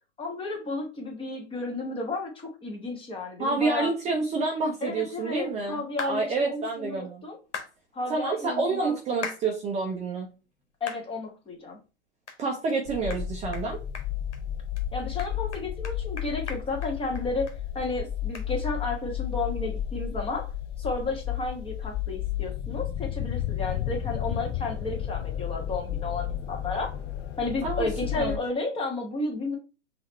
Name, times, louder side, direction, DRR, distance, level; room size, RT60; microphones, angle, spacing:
voice 1, 0.2-3.9 4.8-7.4 7.9-8.9 10.8-11.8 14.9-17.5 17.7-20.5 20.8-26.9 27.4-29.6, left 3 dB, 15° left, 1 dB, 1.4 m, -32 dB
voice 2, 3.4-7.2 8.1-10.3 12.4-13.8 27.6-27.9 28.2-28.4, right 4 dB, 20° right, 0 dB, 0.8 m, -28 dB
sound 1, 6.0-6.2 7.5-7.7 9.2-9.4 9.9-10.0 10.9-11.0 11.5-11.6 12.3-12.4 12.7-12.8 13.1-13.2 13.5-13.7 13.9-14.4 14.8-14.9 15.2-17.6 17.8-17.9 18.3-18.5, left 5 dB, 85° left, 1.3 m, -38 dB
sound 2, 12.9-28.4, left 11 dB, 30° left, 0.9 m, -32 dB
5.6 x 2.8 x 3.1 m, 0.31 s
hypercardioid pair, 120°, 35 cm